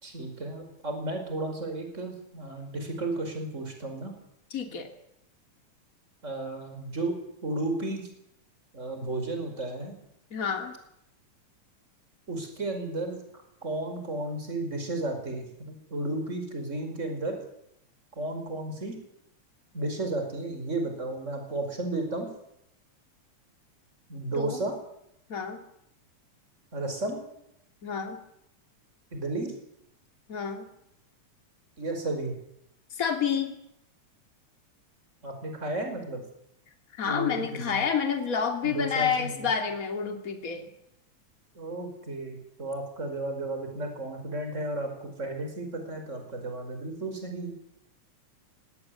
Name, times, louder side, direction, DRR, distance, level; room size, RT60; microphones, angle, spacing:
voice 1, 0.0-4.1 6.2-7.1 7.4-8.0 8.7-10.0 12.3-13.2 13.6-17.4 18.1-19.0 19.7-22.3 24.1-24.8 26.7-27.2 29.1-29.5 31.8-32.4 35.2-36.2 37.0-37.8 38.6-39.5 41.5-47.5, right 2 dB, 25° right, 5 dB, 5.3 m, -33 dB
voice 2, 4.5-4.9 10.3-10.7 24.4-24.6 25.3-25.6 27.8-28.2 30.3-30.7 32.9-33.5 37.0-40.6, left 6 dB, 30° left, 5 dB, 2.8 m, -29 dB
20.0 x 17.5 x 9.8 m, 0.78 s
omnidirectional pair, 3.4 m